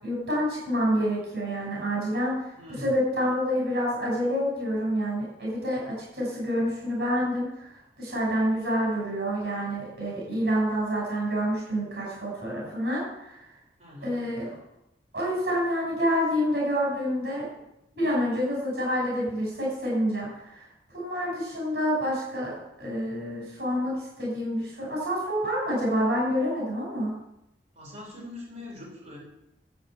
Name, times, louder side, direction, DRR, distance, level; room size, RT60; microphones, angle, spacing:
voice 1, 0.0-13.4 14.0-14.5 15.1-17.4 17.9-22.5 22.8-27.1, equal, 70° right, -4 dB, 6.4 m, -28 dB
voice 2, 2.6-2.9 13.8-14.2 27.7-29.2, left 2 dB, 45° right, -3 dB, 4.4 m, -42 dB
10.0 x 8.4 x 8.6 m, 0.86 s
head